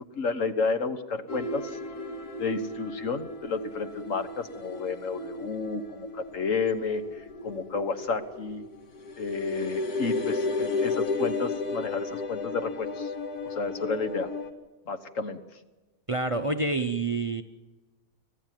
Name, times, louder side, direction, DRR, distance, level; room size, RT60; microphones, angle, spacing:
voice 1, 0.1-1.8 2.4-8.6 9.2-13.1 13.4-14.3 14.9-15.4, left 4 dB, 60° left, 10 dB, 1.6 m, -31 dB
sound 1, 1.3-14.5, left 3 dB, 90° left, 2.1 m, -34 dB
voice 2, 16.1-17.4, right 3 dB, 25° right, 9 dB, 0.9 m, -27 dB
24.5 x 15.5 x 9.2 m, 1.2 s
omnidirectional pair, 1.6 m